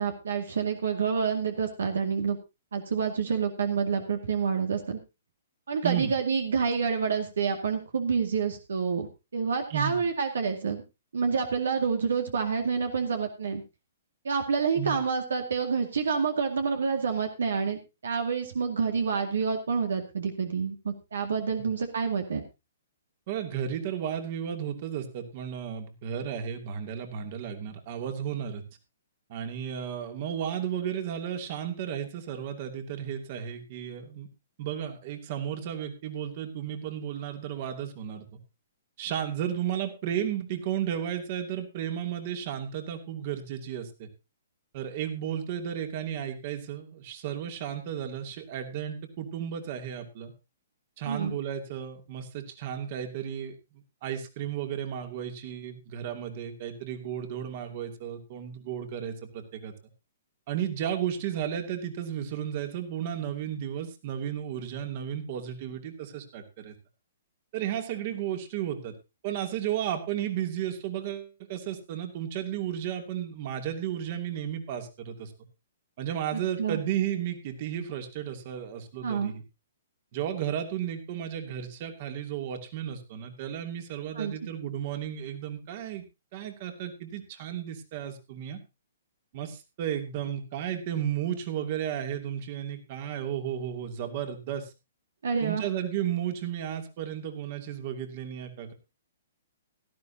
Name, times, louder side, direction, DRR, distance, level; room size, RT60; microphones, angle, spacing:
voice 1, 0.0-2.4 2.7-5.0 5.7-9.1 9.3-10.8 11.1-13.6 14.2-22.4 51.1-51.3 76.3-76.8 79.0-79.3 84.1-84.3 95.2-95.6, right 5 dB, 75° right, 5 dB, 2.1 m, -28 dB
voice 2, 23.3-28.6 29.3-34.3 34.6-38.3 39.0-44.1 44.7-50.3 51.0-59.7 60.5-66.7 67.5-68.9 69.2-75.3 76.0-79.4 80.1-86.0 86.3-88.6 89.3-94.7 95.4-98.7, right 9 dB, 45° right, 6 dB, 2.8 m, -33 dB
17.0 x 13.0 x 2.8 m, 0.27 s
hypercardioid pair, 130°, 0 cm